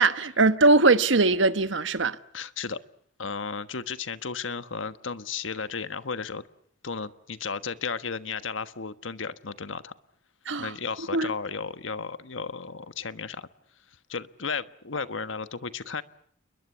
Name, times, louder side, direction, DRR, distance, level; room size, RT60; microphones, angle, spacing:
voice 1, 0.0-2.2 10.5-10.7 11.1-11.3, right 3 dB, 75° right, 1.2 m, -21 dB
voice 2, 2.3-2.8 3.2-6.4 6.8-9.9 10.6-13.5 14.1-16.0, left 5 dB, 85° left, 1.4 m, -34 dB
29.5 x 22.0 x 8.4 m
head